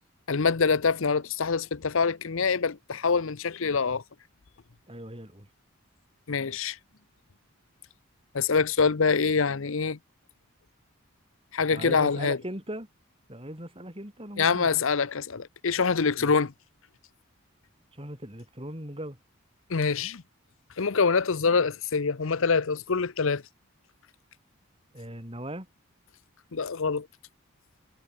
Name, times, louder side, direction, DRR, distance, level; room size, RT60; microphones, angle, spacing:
voice 1, 0.3-4.0 6.3-6.8 8.3-10.0 11.5-12.4 14.4-16.5 19.7-20.2 20.8-23.4 26.5-27.1, left 5 dB, 65° left, 0.7 m, -25 dB
voice 2, 4.9-5.5 11.7-12.9 13.3-14.7 16.2-16.3 17.9-19.2 24.9-25.7, right 1 dB, 25° right, 5.9 m, -39 dB
head